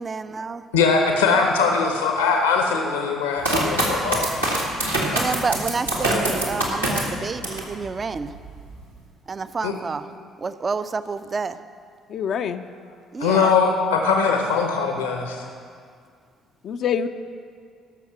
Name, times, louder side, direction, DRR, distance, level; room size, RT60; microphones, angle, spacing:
voice 1, 0.0-0.6 5.1-8.3 9.3-10.1 10.4-11.6 13.1-13.5, right 4 dB, 35° right, 12 dB, 0.6 m, -29 dB
voice 2, 0.7-4.3 9.6-9.7 13.2-15.4, left 5 dB, 75° left, 3 dB, 1.0 m, -21 dB
sound 1, 3.4-7.7 8.2-8.8, right 1 dB, 85° right, 1.9 m, -24 dB
voice 3, 12.1-12.6 16.6-17.1, left 7 dB, 50° left, 7 dB, 0.5 m, -25 dB
17.5 x 7.0 x 6.1 m, 2.2 s
figure-of-eight pair, 45°, 0 cm